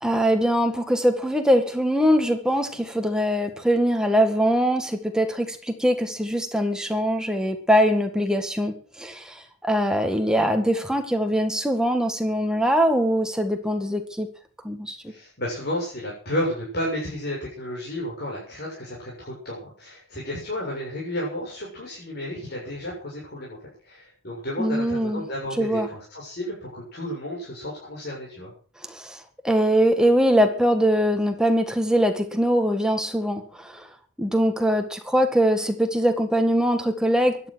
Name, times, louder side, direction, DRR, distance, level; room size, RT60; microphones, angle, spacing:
voice 1, 0.0-14.3 14.6-15.0 24.6-25.2 25.6-25.9 28.9-33.8 34.2-37.5, equal, 5° right, 1.8 m, -22 dB
voice 2, 15.1-23.6 23.8-28.5, left 1 dB, 50° left, 7.3 m, -32 dB
16.5 x 12.0 x 6.4 m
head